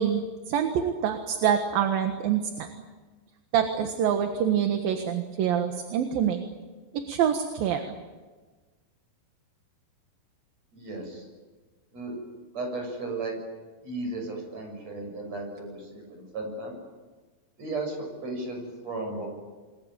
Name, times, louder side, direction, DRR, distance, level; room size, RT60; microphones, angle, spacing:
voice 1, 0.0-2.7 3.5-6.5 6.9-7.9, right 8 dB, 70° right, 6 dB, 3.2 m, -26 dB
voice 2, 10.7-11.2 11.9-12.1 12.5-13.4 13.8-16.8 17.6-19.3, right 2 dB, 40° right, 3 dB, 7.9 m, -35 dB
28.5 x 22.5 x 8.9 m, 1.3 s
omnidirectional pair, 4.5 m